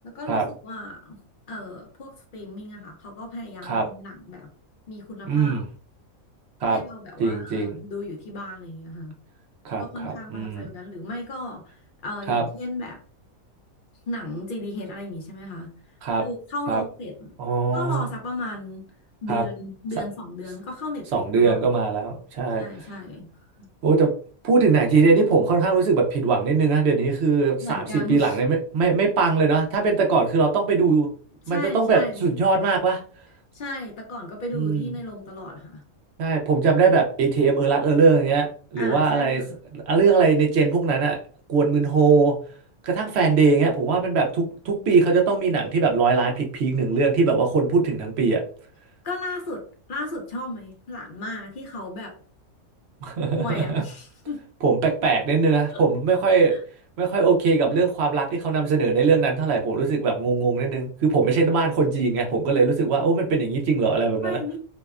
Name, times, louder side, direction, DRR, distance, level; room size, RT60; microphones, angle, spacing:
voice 1, 0.0-1.2 1.5-4.5 4.9-5.6 6.7-9.1 9.8-13.0 14.1-15.7 16.2-17.3 17.7-18.9 19.2-21.7 22.5-23.3 23.6-23.7 27.6-28.4 31.5-32.3 33.5-35.8 38.8-39.5 49.0-52.2 53.3-54.4 55.7-55.8 56.5-56.6 64.2-64.6, left 2 dB, 70° left, 2 dB, 0.5 m, -34 dB
voice 2, 5.3-5.6 6.6-6.8 7.2-7.8 9.6-10.7 12.3-12.4 16.0-16.2 16.7-16.8 17.4-18.0 19.3-19.4 21.1-22.6 23.8-24.1 24.4-31.1 31.5-33.0 34.5-34.9 36.2-39.4 39.7-41.2 41.5-42.3 42.8-48.4 53.0-53.8 54.6-56.6 57.0-64.4, right 4 dB, 65° right, 1 dB, 0.6 m, -21 dB
2.7 x 2.1 x 2.3 m, 0.43 s
omnidirectional pair, 1.5 m